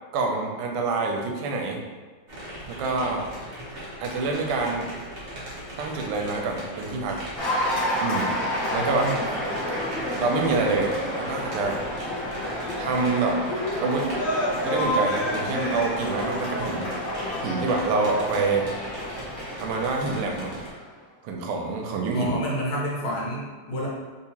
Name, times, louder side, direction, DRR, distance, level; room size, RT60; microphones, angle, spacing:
voice 1, 0.1-1.8 2.7-3.2 4.0-4.9 5.8-7.2 8.0-8.3 8.7-9.1 10.2-11.8 12.8-13.4 13.8-14.1 14.6-16.9 17.4-18.7 19.6-20.5 21.2-22.3, right 3 dB, 90° right, 1 dB, 1.5 m, -26 dB
sound 1, 2.3-20.7, equal, 50° right, 0.7 m, -39 dB
Cheering / Applause, 7.4-20.8, left 1 dB, 45° left, 1.6 m, -29 dB
voice 2, 8.8-9.3 22.1-23.9, equal, 70° left, -5 dB, 1.6 m, -29 dB
3.7 x 2.8 x 2.8 m, 1.4 s
omnidirectional pair, 2.4 m